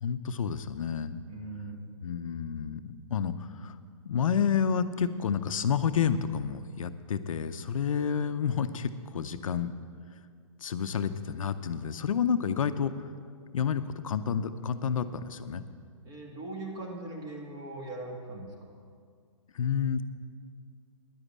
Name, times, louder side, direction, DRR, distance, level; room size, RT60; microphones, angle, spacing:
voice 1, 0.0-1.2 2.0-3.8 4.0-9.7 10.6-13.1 13.5-15.6 19.5-20.0, left 7 dB, 70° left, 11 dB, 0.7 m, -30 dB
voice 2, 1.3-1.9 16.0-18.7, right 2 dB, 20° right, 0 dB, 2.0 m, -40 dB
10.5 x 8.1 x 8.7 m, 2.1 s
hypercardioid pair, 150°, 18 cm